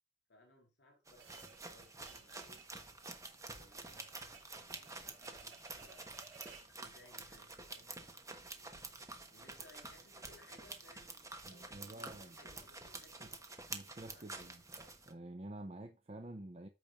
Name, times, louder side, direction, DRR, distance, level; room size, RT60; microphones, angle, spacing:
voice 1, 0.3-2.6 3.5-4.1 4.5-6.3 6.7-8.9 9.3-11.2 11.5-13.4 14.1-14.4, left 1 dB, 70° left, 4.2 m, -64 dB
sound 1, 1.1-15.1, right 3 dB, 20° right, 1.2 m, -49 dB
sound 2, 1.2-6.8, right 5 dB, 85° right, 5.9 m, -59 dB
voice 2, 11.5-12.4 13.2-13.3 13.7-14.6 15.1-16.7, right 1 dB, 35° right, 0.7 m, -49 dB
14.0 x 5.1 x 2.5 m
head